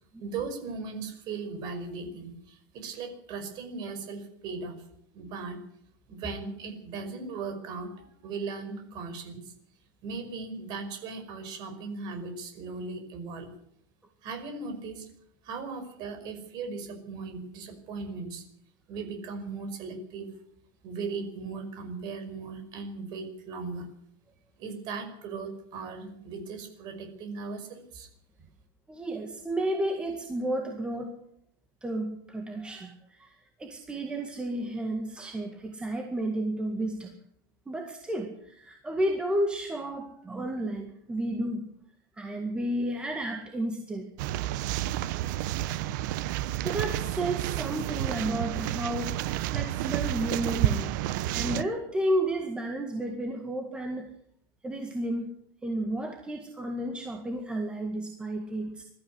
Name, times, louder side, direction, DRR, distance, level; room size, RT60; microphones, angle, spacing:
voice 1, 0.2-4.8 5.1-5.6 6.1-9.5 10.0-13.5 14.2-15.1 15.4-18.4 18.9-20.3 20.8-23.9 24.6-28.1, right 4 dB, 40° right, 7 dB, 5.5 m, -38 dB
voice 2, 28.9-31.1 31.8-37.1 37.7-41.7 42.2-44.1 46.6-49.2 49.5-54.1 54.6-55.3 55.6-58.8, right 1 dB, 10° right, 3 dB, 1.9 m, -32 dB
sound 1, 44.2-51.6, right 13 dB, 60° right, 1.0 m, -30 dB
21.5 x 13.5 x 9.6 m, 0.71 s
supercardioid pair, 160°, 11 cm